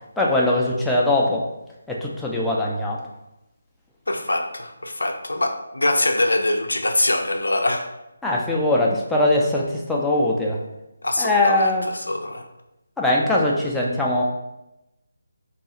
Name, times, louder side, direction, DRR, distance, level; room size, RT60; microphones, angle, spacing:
voice 1, 0.2-1.5 1.9-3.0 8.2-10.6 11.2-11.9 13.0-14.2, left 1 dB, 5° left, -4 dB, 0.3 m, -21 dB
voice 2, 4.1-7.9 11.0-12.4, left 1 dB, 85° left, 5 dB, 0.4 m, -23 dB
2.3 x 2.3 x 2.8 m, 0.92 s
figure-of-eight pair, 160°, 0 cm